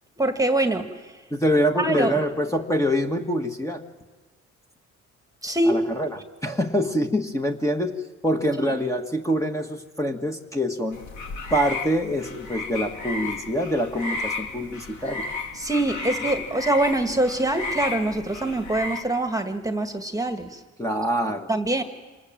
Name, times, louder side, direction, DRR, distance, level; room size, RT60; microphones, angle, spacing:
voice 1, 0.2-1.1 1.7-2.2 5.4-5.8 8.6-8.7 15.5-20.6 21.5-21.8, right 1 dB, 10° right, 7 dB, 1.8 m, -24 dB
voice 2, 1.3-3.8 5.7-8.0 8.2-11.0 11.5-15.3 20.8-21.5, equal, 10° left, 3 dB, 1.7 m, -25 dB
sound 1, 10.9-19.0, left 3 dB, 70° left, 3.0 m, -33 dB
27.5 x 20.0 x 7.6 m, 1.3 s
cardioid pair, 90°, 30 cm